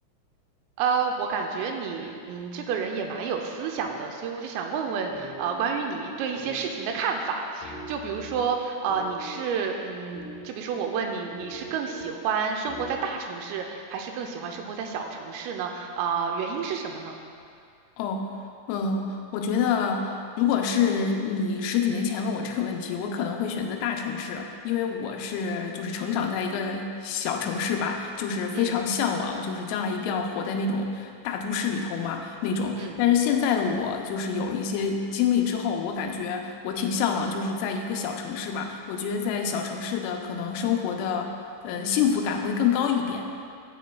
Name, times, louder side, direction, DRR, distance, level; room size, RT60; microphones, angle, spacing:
voice 1, 0.8-17.2 28.5-28.8 32.8-33.0, right 6 dB, 85° right, 3 dB, 3.3 m, -30 dB
sound 1, 5.1-13.3, equal, 60° left, 2.4 m, -44 dB
voice 2, 18.0-18.3 18.7-41.3 41.6-43.3, left 6 dB, 85° left, 3 dB, 3.2 m, -27 dB
15.0 x 8.1 x 2.3 m, 2.4 s
omnidirectional pair, 5.9 m